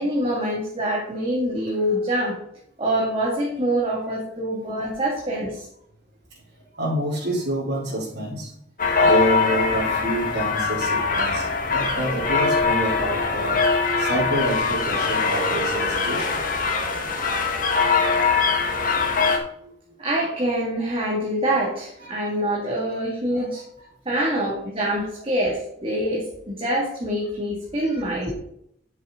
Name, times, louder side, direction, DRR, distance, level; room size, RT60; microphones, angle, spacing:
voice 1, 0.0-2.4 2.8-5.7 20.0-23.6 24.1-28.3, right 1 dB, 30° right, -4 dB, 2.4 m, -25 dB
voice 2, 6.7-8.5 9.0-13.6 14.0-16.4 16.7-16.8 17.1-18.6 19.1-19.7 22.0-22.3 22.6-22.7 23.3-23.5 24.2-24.6 25.3-25.5 27.9-28.0, right 1 dB, 65° right, -8 dB, 3.5 m, -29 dB
sound 1, 8.8-19.4, left 4 dB, 50° left, 1.8 m, -22 dB
10.5 x 7.5 x 3.9 m, 0.71 s
head